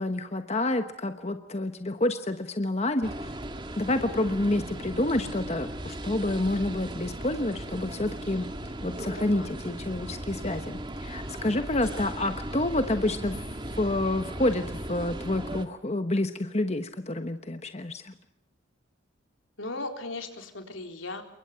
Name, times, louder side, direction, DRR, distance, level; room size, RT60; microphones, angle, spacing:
voice 1, 0.0-3.4 3.8-8.5 8.8-13.4 13.7-18.1, left 1 dB, 35° left, 8 dB, 1.2 m, -28 dB
sound 1, 3.0-15.7, right 1 dB, 25° right, 1.9 m, -37 dB
voice 2, 9.1-9.6 19.6-21.2, left 2 dB, 80° left, 5 dB, 4.0 m, -37 dB
28.0 x 23.5 x 5.8 m, 0.79 s
head